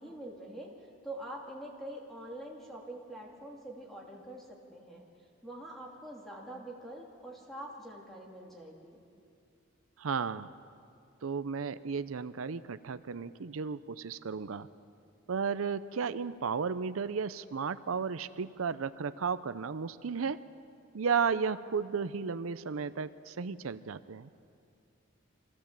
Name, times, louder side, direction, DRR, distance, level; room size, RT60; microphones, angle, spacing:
voice 1, 0.0-5.1 5.4-9.0, right 1 dB, ahead, -2 dB, 2.7 m, -45 dB
voice 2, 10.0-10.5 11.2-14.7 15.3-20.4 20.9-24.3, right 6 dB, 85° right, 13 dB, 0.6 m, -34 dB
24.5 x 16.0 x 7.4 m, 2.4 s
head